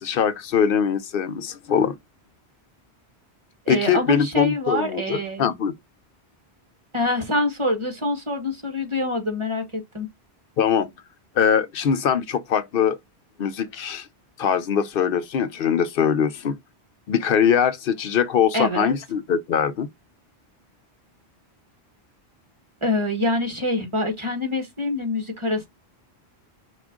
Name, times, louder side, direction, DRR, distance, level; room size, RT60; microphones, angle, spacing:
voice 1, 0.0-2.0 3.7-5.7 10.6-10.9 11.4-13.0 13.4-14.1 14.4-16.6 17.1-19.9, left 7 dB, 65° left, 0.7 m, -22 dB
voice 2, 3.6-5.5 6.9-10.1 18.5-18.9 22.8-25.7, left 1 dB, 25° right, 1.5 m, -25 dB
5.9 x 2.5 x 3.7 m
omnidirectional pair, 1.1 m